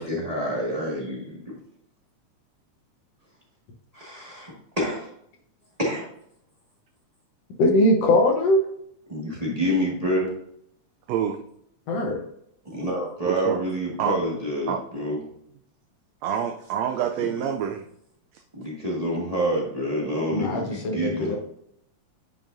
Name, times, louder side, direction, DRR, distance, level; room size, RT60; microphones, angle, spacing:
voice 1, 0.0-1.5 3.9-5.1 5.8-6.0 9.1-10.3 12.6-15.2 17.2-17.3 18.5-21.4, equal, 15° right, -4 dB, 1.4 m, -27 dB
voice 2, 7.6-8.7 11.9-12.2 20.3-21.4, left 1 dB, 65° left, 2 dB, 1.9 m, -21 dB
voice 3, 11.1-11.4 13.2-13.6 14.0-14.2 14.7-14.8 16.2-17.9 18.3-18.4, right 8 dB, 80° right, 5 dB, 1.7 m, -27 dB
10.0 x 5.7 x 2.6 m, 0.71 s
omnidirectional pair, 3.4 m